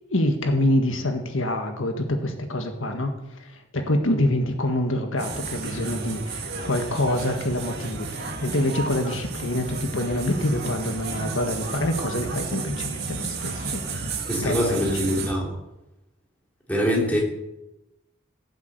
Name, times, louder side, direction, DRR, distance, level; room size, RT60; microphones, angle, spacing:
voice 1, 0.1-3.1 3.4-14.2 14.4-14.8 15.0-15.3, left 1 dB, 75° left, 5 dB, 1.7 m, -26 dB
sound 1, 5.2-15.3, right 4 dB, 50° right, 2.1 m, -32 dB
voice 2, 14.3-15.5 16.7-17.2, equal, 5° left, -2 dB, 3.4 m, -24 dB
16.0 x 7.2 x 8.3 m, 0.93 s
head